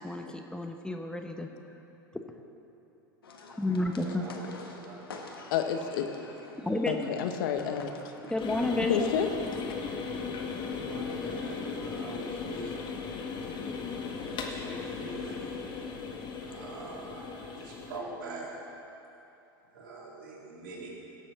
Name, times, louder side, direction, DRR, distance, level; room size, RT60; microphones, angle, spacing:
voice 1, 0.0-1.5 3.6-4.2 6.6-7.1 8.3-9.1, left 2 dB, 5° left, 1.0 m, -31 dB
sound 1, 3.2-9.2, left 3 dB, 85° left, 1.4 m, -48 dB
voice 2, 4.0-4.5 4.8-5.0 10.7-13.0 14.1-15.6 16.4-18.6 19.7-20.9, right 2 dB, 65° right, 3.4 m, -44 dB
voice 3, 5.5-6.1 6.9-7.9 8.9-9.6, left 8 dB, 65° left, 1.1 m, -29 dB
sound 2, 8.4-18.0, left 5 dB, 40° left, 1.6 m, -37 dB
17.0 x 7.5 x 6.8 m
hypercardioid pair, 85°, 12 cm